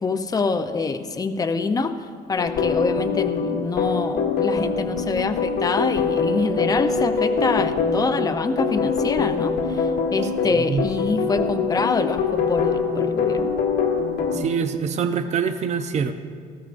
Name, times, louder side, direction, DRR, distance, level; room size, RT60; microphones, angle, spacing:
voice 1, 0.0-13.5, left 4 dB, 20° left, 8 dB, 0.6 m, -25 dB
sound 1, 2.4-14.4, left 5 dB, 85° left, 2.1 m, -24 dB
voice 2, 10.4-10.8 14.3-16.1, right 6 dB, 40° right, 7 dB, 0.7 m, -24 dB
19.0 x 14.0 x 2.6 m, 2.2 s
cardioid pair, 110°, 17 cm